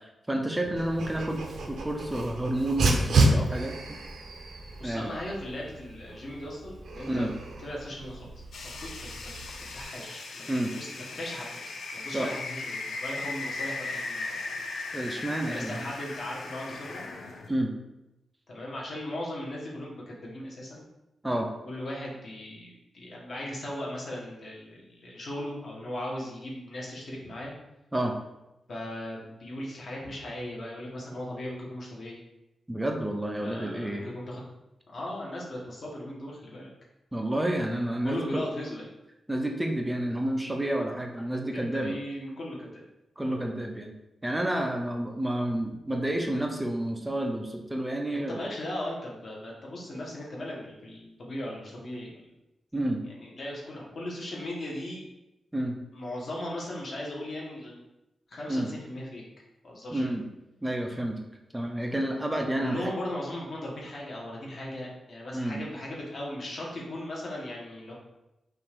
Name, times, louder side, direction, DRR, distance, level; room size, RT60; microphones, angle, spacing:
voice 1, 0.0-3.7 4.8-5.1 7.1-7.3 10.5-10.7 12.1-12.3 14.9-15.9 17.5-17.7 21.2-21.5 27.9-28.1 32.7-34.1 37.1-38.4 39.3-42.0 43.2-43.9 44.2-48.4 52.7-53.0 55.5-55.7 58.5-58.7 59.9-60.3 60.6-61.2 61.5-62.9 65.3-65.6, right 1 dB, 10° right, 3 dB, 0.4 m, -30 dB
Dog, 0.8-9.8, right 2 dB, 65° right, 0.6 m, -31 dB
voice 2, 4.8-7.3 7.6-8.4 8.8-9.3 9.7-10.5 10.8-14.2 15.3-17.0 18.5-20.9 21.6-27.5 28.7-32.2 33.4-34.4 34.9-36.7 38.0-38.9 41.5-42.8 43.2-43.4 48.1-52.3 53.1-55.0 55.9-57.8 58.3-59.2 59.6-60.1 62.4-67.9, left 1 dB, 45° left, -4 dB, 1.1 m, -38 dB
sound 1, 8.5-17.5, left 3 dB, 75° left, 0.5 m, -38 dB
5.7 x 2.5 x 3.4 m, 0.92 s
wide cardioid pair, 180°, 0 cm